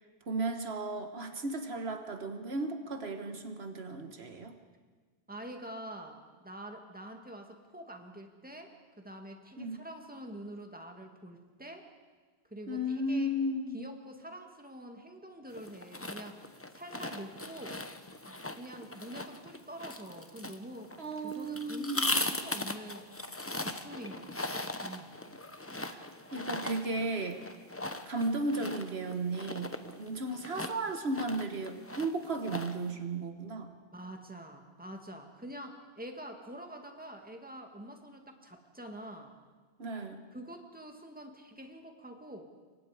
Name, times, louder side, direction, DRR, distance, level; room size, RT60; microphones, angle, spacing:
voice 1, 0.3-4.5 9.6-9.8 12.7-13.8 21.0-22.2 25.9-27.4 28.1-33.7 39.8-40.2, right 1 dB, 80° right, 6 dB, 1.7 m, -35 dB
voice 2, 5.3-11.9 12.5-13.3 13.7-16.4 16.7-17.8 18.3-20.9 21.2-23.3 23.6-25.2 33.8-39.4 40.3-42.4, right 1 dB, 10° right, 3 dB, 2.0 m, -46 dB
sound 1, 15.5-32.9, left 2 dB, 15° left, 0.9 m, -39 dB
27.5 x 23.5 x 5.0 m, 1.4 s
omnidirectional pair, 1.1 m